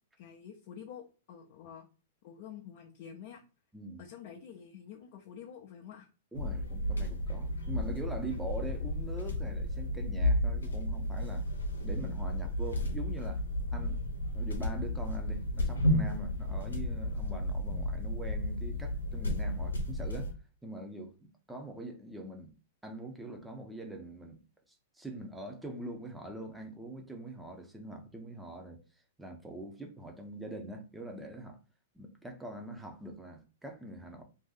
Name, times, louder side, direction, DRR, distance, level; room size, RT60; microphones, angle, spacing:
voice 1, 0.2-1.9 2.2-3.4 4.0-6.1, left 8 dB, 50° left, 0.7 m, -48 dB
sound 1, 6.3-20.3, left 1 dB, 90° left, 0.8 m, -33 dB
voice 2, 6.3-11.5 11.8-13.4 13.7-14.0 14.3-20.3 20.6-22.5 22.8-24.4 25.0-28.8 29.2-31.6 31.9-34.2, right 2 dB, 5° right, 0.8 m, -43 dB
2.7 x 2.6 x 3.8 m
hypercardioid pair, 110°, 0 cm